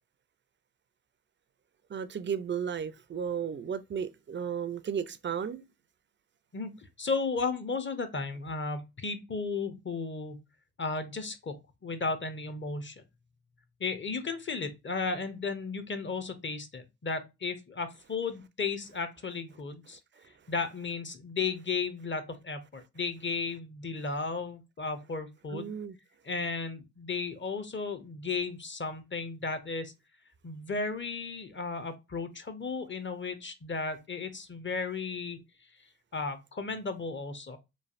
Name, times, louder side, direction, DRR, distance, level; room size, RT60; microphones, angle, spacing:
voice 1, 1.9-5.6 25.5-26.0, right 7 dB, 30° right, 0.4 m, -34 dB
voice 2, 6.5-10.4 10.8-13.0 13.8-20.0 20.5-25.7 26.2-29.9 30.4-35.4 36.1-37.6, left 4 dB, 30° left, 0.6 m, -34 dB
3.1 x 2.2 x 2.4 m
supercardioid pair, 45°, 37 cm